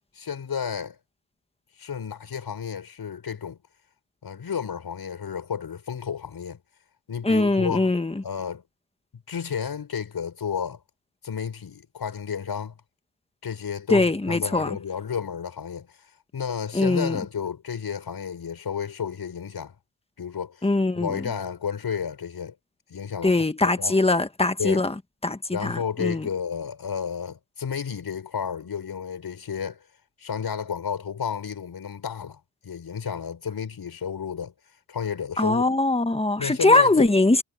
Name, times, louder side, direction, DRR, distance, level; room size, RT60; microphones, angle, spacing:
voice 1, 0.2-1.0 1.8-3.6 4.2-6.6 7.1-7.9 8.2-8.6 9.3-10.8 11.2-12.8 13.4-15.9 16.3-19.8 20.2-20.7 20.9-22.5 22.9-24.0 24.6-24.8 25.5-29.8 30.2-34.5 34.9-35.7 36.4-37.1, left 7 dB, 65° left, 5.6 m, -32 dB
voice 2, 7.2-8.1 13.9-14.8 16.7-17.2 20.6-21.2 23.2-24.9 25.2-26.2 35.4-37.4, left 2 dB, 15° left, 1.5 m, -22 dB
wide cardioid pair, 100°, 40 cm